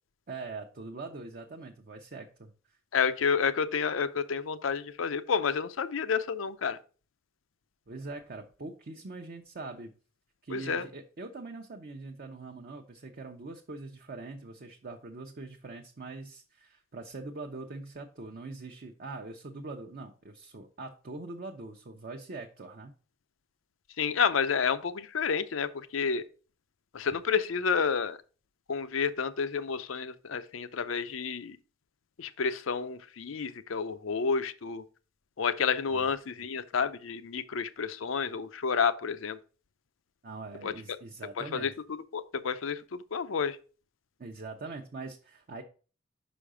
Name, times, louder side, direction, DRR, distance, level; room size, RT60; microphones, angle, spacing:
voice 1, 0.3-2.5 7.9-9.9 10.4-22.9 35.9-36.1 40.2-41.7 44.2-45.6, right 3 dB, 50° right, 0.7 m, -42 dB
voice 2, 2.9-6.8 10.5-10.8 24.0-26.2 26.9-28.2 28.7-31.6 32.2-34.8 35.4-39.4 40.6-40.7 41.4-41.7 42.1-42.8 43.1-43.6, left 6 dB, 90° left, 0.6 m, -30 dB
5.5 x 5.1 x 4.9 m
head